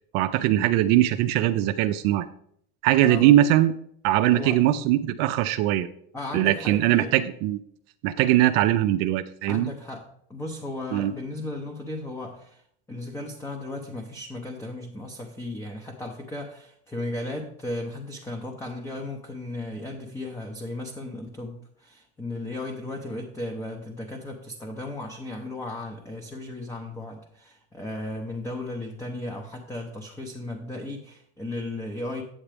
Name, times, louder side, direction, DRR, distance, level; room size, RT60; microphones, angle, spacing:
voice 1, 0.1-2.3 2.8-3.7 4.0-5.9 6.3-7.6 8.0-9.7 10.9-11.1, right 13 dB, 60° right, 0.5 m, -21 dB
voice 2, 4.3-4.6 6.1-7.1 9.5-12.6 12.9-32.2, left 2 dB, 10° left, 0.8 m, -35 dB
8.9 x 7.2 x 3.4 m
supercardioid pair, 130°, 30 cm